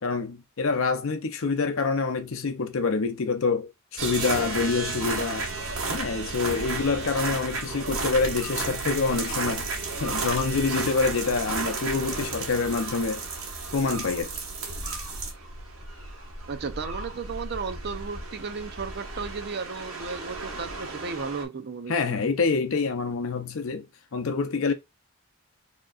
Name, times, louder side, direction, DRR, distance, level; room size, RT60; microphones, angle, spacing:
voice 1, 0.0-5.5 5.9-9.7 10.0-13.2 13.7-14.3 21.9-23.9 24.1-24.7, left 4 dB, 60° left, 0.6 m, -26 dB
sound 1, 4.0-21.4, right 3 dB, 65° right, 1.3 m, -33 dB
voice 2, 16.5-22.3, right 5 dB, 50° right, 0.5 m, -34 dB
5.0 x 2.9 x 2.3 m
head